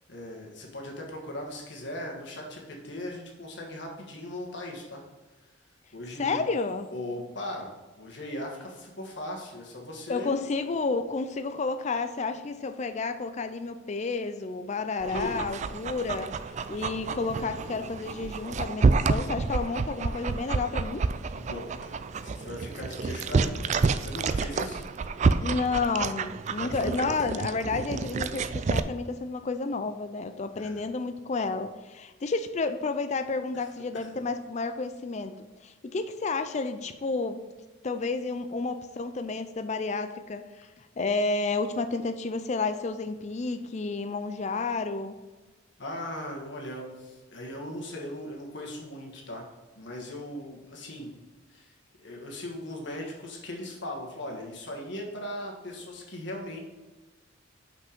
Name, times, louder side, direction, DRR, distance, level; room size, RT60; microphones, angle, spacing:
voice 1, 0.1-5.0 5.9-6.4 6.9-10.3 15.1-15.5 21.3-21.9 22.2-23.7 24.0-24.8 26.6-27.1 30.6-30.8 33.5-33.6 33.9-34.1 45.8-49.4 49.7-51.1 51.5-51.7 52.0-56.6, left 1 dB, 60° left, 0 dB, 1.6 m, -38 dB
voice 2, 6.2-6.9 10.1-16.3 16.7-21.1 25.4-35.4 35.6-37.4 37.8-40.7 41.0-45.2, left 3 dB, 35° left, 9 dB, 0.4 m, -31 dB
Dog, 15.0-28.8, right 4 dB, 35° right, 0.3 m, -29 dB
5.9 x 5.7 x 5.3 m, 1.2 s
head